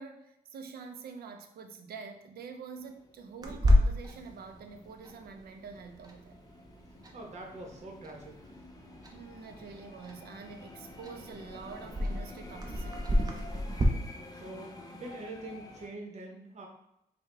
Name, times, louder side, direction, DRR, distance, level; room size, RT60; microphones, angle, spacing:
voice 1, 0.0-6.3 9.1-13.2, right 5 dB, 80° right, 5 dB, 0.5 m, -46 dB
sound 1, 2.8-15.9, left 2 dB, 25° left, 0.6 m, -50 dB
Clock, 3.4-13.8, left 1 dB, 25° right, 0.7 m, -32 dB
voice 2, 7.1-8.4 14.3-16.7, right 2 dB, 45° right, 1 dB, 0.9 m, -44 dB
4.8 x 2.3 x 3.3 m, 0.84 s
cardioid pair, 110°, 16 cm